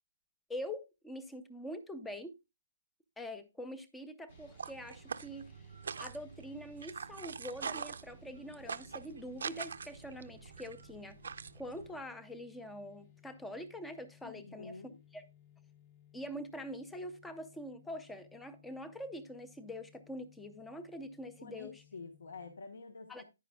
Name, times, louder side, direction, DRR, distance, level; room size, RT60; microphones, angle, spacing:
voice 1, 0.5-2.4 3.2-5.5 6.0-11.2 11.6-14.8 15.1-15.2 16.1-21.8 23.1-23.2, equal, 5° left, 0.5 m, -44 dB
sound 1, 4.3-22.6, left 9 dB, 20° left, 0.8 m, -64 dB
sound 2, 4.3-12.0, right 6 dB, 60° right, 0.5 m, -44 dB
voice 2, 14.2-15.0 21.4-23.2, left 4 dB, 65° left, 1.2 m, -48 dB
9.8 x 9.8 x 2.3 m
hypercardioid pair, 175°, 0 cm